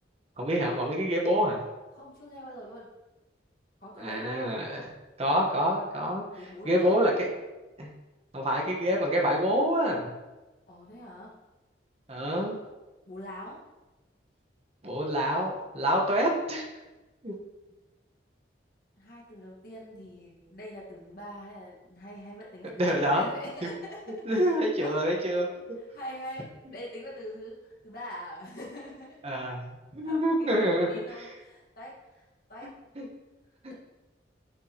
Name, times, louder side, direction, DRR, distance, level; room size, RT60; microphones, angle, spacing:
voice 1, 0.4-1.6 4.0-4.9 5.2-6.2 6.6-7.3 7.8-7.9 8.3-10.1 12.1-12.6 14.8-16.7 17.2-17.3 22.8-23.3 23.6-23.7 24.2-25.5 26.6-26.7 29.2-30.9 31.2-31.3 33.0-33.1 33.6-33.7, equal, 35° right, 0 dB, 1.1 m, -27 dB
voice 2, 1.9-2.9 3.8-4.6 6.3-7.3 10.7-11.3 13.1-13.6 15.9-16.3 19.0-24.0 24.3-25.0 25.9-29.2 30.0-32.7, equal, 55° left, -5 dB, 1.6 m, -44 dB
9.8 x 4.7 x 2.9 m, 1.1 s
head